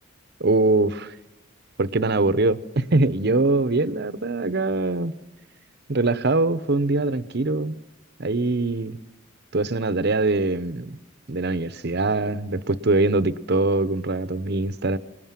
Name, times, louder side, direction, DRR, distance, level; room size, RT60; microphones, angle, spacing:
voice 1, 0.4-1.1 1.8-5.1 5.9-7.8 8.2-9.0 9.5-11.0 11.3-15.0, right 2 dB, 50° right, 14 dB, 0.8 m, -23 dB
26.0 x 19.5 x 7.5 m, 1.1 s
head